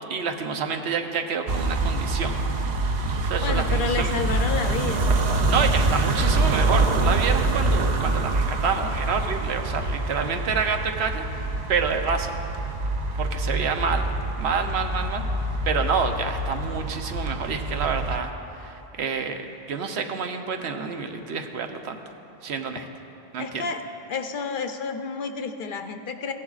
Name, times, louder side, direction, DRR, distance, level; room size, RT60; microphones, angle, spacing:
voice 1, 0.1-2.4 3.2-4.1 5.5-12.3 13.2-15.2 15.7-19.4 19.7-22.0 22.4-22.9 23.3-23.6, right 5 dB, 85° right, 5 dB, 1.0 m, -28 dB
sound 1, 1.5-18.2, right 2 dB, 50° right, 0.6 m, -25 dB
voice 2, 3.4-5.1 22.8-22.9 23.4-23.8 24.1-26.3, left 5 dB, 60° left, 7 dB, 0.7 m, -30 dB
16.0 x 11.0 x 2.4 m, 2.8 s
omnidirectional pair, 1.1 m